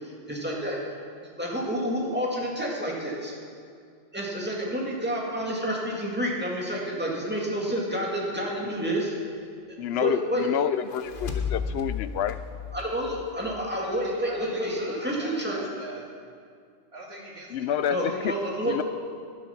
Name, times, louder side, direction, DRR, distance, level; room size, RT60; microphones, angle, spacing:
voice 1, 0.0-0.8 1.4-3.3 4.1-9.1 10.0-10.5 12.7-15.6 17.9-18.8, equal, 10° right, -3 dB, 2.2 m, -29 dB
voice 2, 8.6-8.9 9.8-12.4 17.5-18.3 18.6-18.8, left 9 dB, 70° left, 13 dB, 0.8 m, -28 dB
sound 1, 10.7-14.0, left 6 dB, 50° left, 1.1 m, -34 dB
voice 3, 13.8-16.0 16.9-18.5, right 1 dB, 65° right, -2 dB, 2.3 m, -42 dB
11.5 x 11.0 x 5.8 m, 2.2 s
omnidirectional pair, 1.2 m